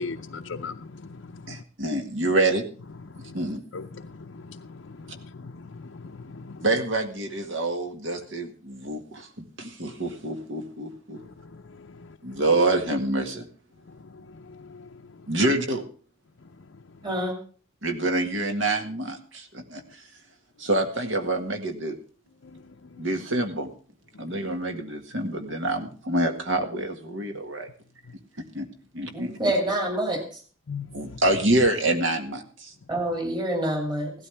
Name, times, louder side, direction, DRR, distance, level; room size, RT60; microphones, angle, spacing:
voice 1, 0.0-1.6 3.1-6.7 11.1-11.9 13.9-15.5 22.4-23.2 24.1-24.4 30.7-31.2, left 4 dB, 65° left, 3 dB, 0.6 m, -40 dB
voice 2, 1.5-2.6 3.3-3.6 6.6-11.2 12.3-13.5 15.3-15.8 17.8-19.8 20.6-22.0 23.0-23.7 24.2-27.7 28.4-28.7 28.9-29.3 30.9-32.7, right 2 dB, 65° right, 6 dB, 1.9 m, -26 dB
voice 3, 17.0-17.3 29.1-30.4 32.9-34.1, right 1 dB, 20° right, 3 dB, 2.6 m, -27 dB
16.0 x 12.5 x 3.5 m, 0.40 s
head